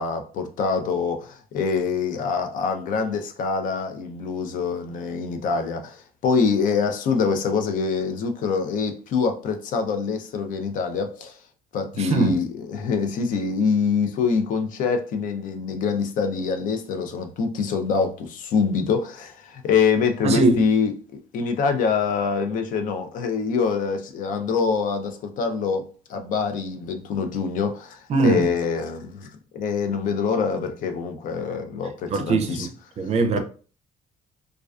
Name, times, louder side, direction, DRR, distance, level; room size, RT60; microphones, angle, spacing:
voice 1, 0.0-11.4 11.7-20.9 21.3-29.3 29.5-32.7, left 5 dB, 65° left, 0.5 m, -25 dB
voice 2, 12.0-12.4 20.2-20.6 28.1-28.5 32.1-32.7 33.0-33.4, right 3 dB, 45° right, 0.4 m, -21 dB
2.3 x 2.2 x 2.4 m
cardioid pair, 105°, 15 cm